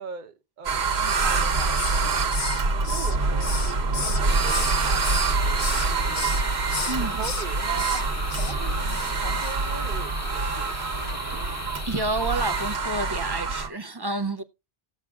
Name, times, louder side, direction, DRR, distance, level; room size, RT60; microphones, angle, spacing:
voice 1, 0.0-6.3 6.8-8.0 8.4-11.5, right 5 dB, 50° right, 0.9 m, -41 dB
sound 1, 0.6-13.7, right 4 dB, 85° right, 1.3 m, -25 dB
Hiss, 1.3-2.1 2.3-4.8 5.0-5.9 6.1-6.4 6.7-7.5 7.8-8.0 8.3-8.5 8.9-9.1 9.4-9.5, left 6 dB, 65° left, 1.1 m, -33 dB
sound 2, 4.3-12.8, left 3 dB, 25° left, 0.3 m, -38 dB
voice 2, 6.8-7.2 10.7-10.9 11.9-14.4, right 2 dB, 30° right, 0.5 m, -29 dB
18.5 x 7.3 x 2.4 m
omnidirectional pair, 1.0 m